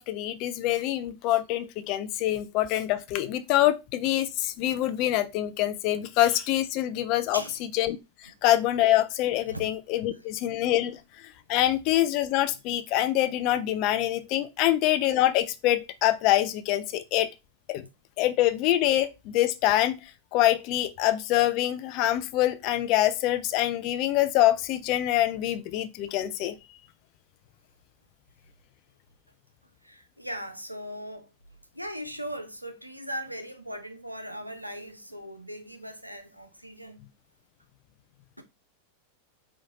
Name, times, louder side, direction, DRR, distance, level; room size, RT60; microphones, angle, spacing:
voice 1, 0.0-7.4 7.7-8.0 8.4-11.0 11.5-17.3 17.7-17.9 18.2-20.0 20.3-26.6, left 14 dB, 40° left, 0.5 m, -25 dB
voice 2, 29.8-31.3 31.7-37.1 38.4-38.5, equal, 90° right, 0.6 m, -39 dB
4.7 x 2.5 x 3.7 m
figure-of-eight pair, 90°, 0 cm